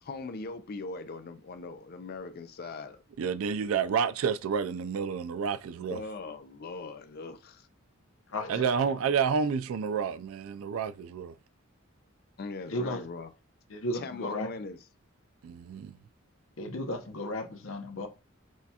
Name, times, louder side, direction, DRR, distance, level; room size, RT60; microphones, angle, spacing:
voice 1, 0.0-3.0 5.9-7.7 8.4-8.9 12.4-13.3 13.9-14.8, left 3 dB, 50° left, 0.4 m, -40 dB
voice 2, 3.2-6.0 8.5-11.3 15.4-15.9, right 6 dB, 80° right, 0.3 m, -29 dB
voice 3, 8.3-8.6 12.7-13.0 13.7-14.5 16.6-18.1, left 1 dB, 75° left, 0.8 m, -34 dB
6.2 x 2.3 x 2.8 m
head